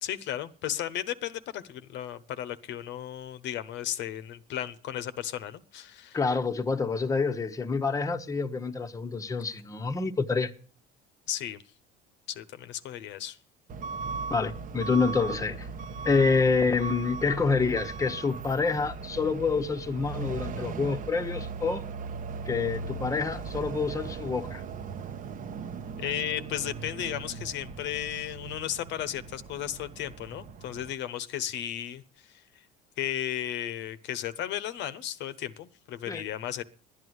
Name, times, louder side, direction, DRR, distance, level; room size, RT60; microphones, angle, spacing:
voice 1, 0.0-6.2 11.3-11.6 12.3-13.4 26.0-32.0 32.3-32.4 33.0-36.6, left 11 dB, 65° left, 0.9 m, -34 dB
voice 2, 6.1-10.5 14.3-15.7 16.0-21.8 22.5-24.6 36.1-36.2, left 4 dB, 15° left, 1.0 m, -27 dB
Truck / Alarm, 13.7-30.9, right 4 dB, 45° right, 1.0 m, -38 dB
11.5 x 9.7 x 7.9 m
supercardioid pair, 100°, 20 cm